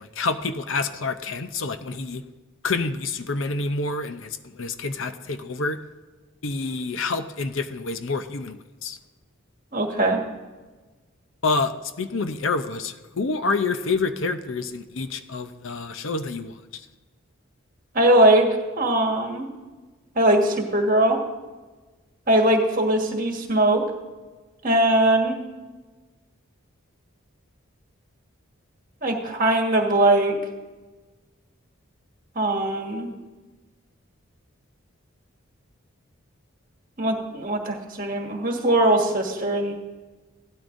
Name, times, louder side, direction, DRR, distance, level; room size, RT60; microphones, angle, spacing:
voice 1, 0.0-2.2 2.6-5.8 6.4-9.0 11.4-16.6, left 3 dB, 65° left, 9 dB, 0.6 m, -28 dB
voice 2, 9.7-10.2 17.9-18.5 18.8-19.5 20.1-21.2 22.3-23.8 24.6-25.4 29.0-30.4 32.3-33.1 37.0-39.7, right 1 dB, 40° right, 2 dB, 1.6 m, -20 dB
16.5 x 12.5 x 2.6 m, 1.2 s
head